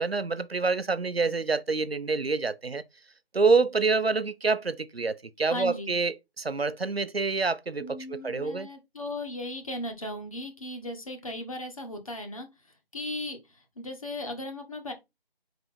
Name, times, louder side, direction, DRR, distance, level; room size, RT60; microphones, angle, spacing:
voice 1, 0.0-2.8 3.3-8.7, right 4 dB, 85° right, 0.8 m, -27 dB
voice 2, 5.5-5.9 7.8-12.5 12.9-14.9, left 1 dB, 35° left, 1.4 m, -37 dB
5.1 x 4.5 x 4.2 m
figure-of-eight pair, 160°, 30 cm